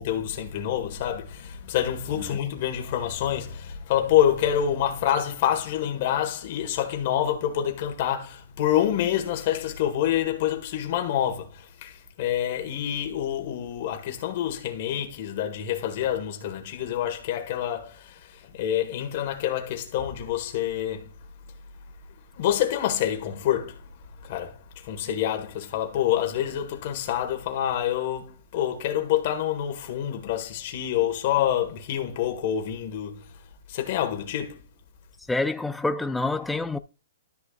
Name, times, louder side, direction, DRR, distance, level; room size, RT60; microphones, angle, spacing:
voice 1, 0.0-18.1 18.5-21.1 22.3-23.8 24.2-24.6 24.8-33.2 33.7-34.6, left 10 dB, 40° left, 1.7 m, -27 dB
voice 2, 35.3-36.8, left 2 dB, 5° left, 0.4 m, -27 dB
12.5 x 6.6 x 2.5 m
hypercardioid pair, 165°, 0 cm